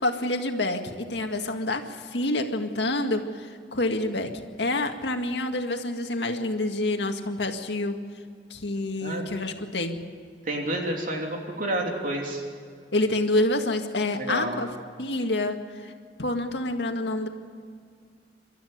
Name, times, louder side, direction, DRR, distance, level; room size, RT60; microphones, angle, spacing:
voice 1, 0.0-4.3 4.6-8.0 8.5-10.0 12.9-14.7 15.0-15.9 16.2-17.3, left 2 dB, 75° left, 5 dB, 2.0 m, -27 dB
voice 2, 10.4-12.4 14.2-14.5, right 1 dB, 50° right, 0 dB, 3.2 m, -29 dB
28.0 x 13.0 x 8.1 m, 2.2 s
head